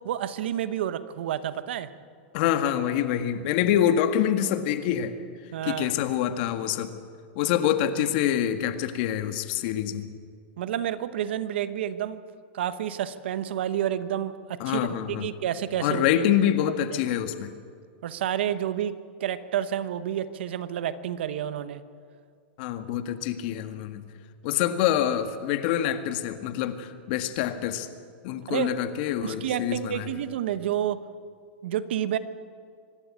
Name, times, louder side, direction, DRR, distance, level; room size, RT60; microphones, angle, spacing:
voice 1, 0.0-1.9 5.5-5.9 10.6-12.2 12.5-14.9 15.2-16.2 18.0-21.8 28.5-28.7 29.2-31.0 31.6-32.2, right 10 dB, 75° right, 13 dB, 1.1 m, -29 dB
voice 2, 2.3-5.2 5.6-6.9 7.4-10.1 14.6-15.3 15.8-17.5 22.6-24.0 24.4-27.9 28.2-30.1, left 10 dB, 55° left, 9 dB, 1.7 m, -26 dB
25.0 x 12.0 x 8.6 m, 2.1 s
hypercardioid pair, 125°, 6 cm